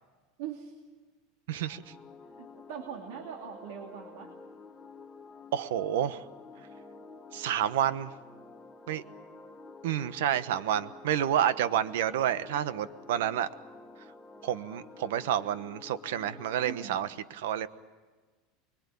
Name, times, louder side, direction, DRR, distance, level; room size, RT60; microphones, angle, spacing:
voice 1, 0.4-0.8 2.4-4.3 16.7-17.0, right 8 dB, 65° right, 2 dB, 2.6 m, -41 dB
sound 1, 1.5-16.9, left 4 dB, 10° left, 1.0 m, -50 dB
voice 2, 1.5-1.9 5.5-6.3 7.3-8.1 8.9-9.0 9.8-13.5 14.4-17.7, right 10 dB, 85° right, 14 dB, 1.1 m, -29 dB
25.0 x 22.5 x 8.5 m, 1.3 s
supercardioid pair, 175°, 0 cm